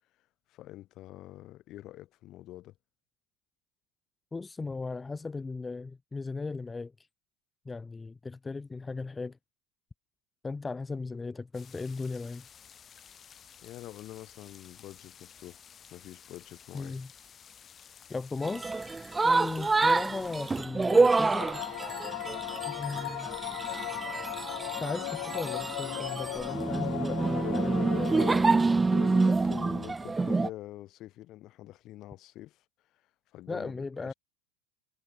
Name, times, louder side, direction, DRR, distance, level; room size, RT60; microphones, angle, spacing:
voice 1, 0.5-2.7 13.6-15.6 15.9-17.0 28.9-32.6 33.3-34.1, left 15 dB, 45° left, 6.1 m, -45 dB
voice 2, 4.3-6.9 7.6-9.4 10.4-12.5 16.7-17.1 18.1-18.8 19.2-21.5 22.7-23.3 24.8-28.3 33.5-34.1, left 3 dB, 15° left, 2.7 m, -37 dB
sound 1, 11.5-20.6, left 8 dB, 30° left, 4.5 m, -54 dB
sound 2, 18.4-30.5, right 3 dB, 15° right, 0.4 m, -27 dB
sound 3, 20.7-28.9, left 27 dB, 70° left, 0.6 m, -37 dB
supercardioid pair, 120°, 0 cm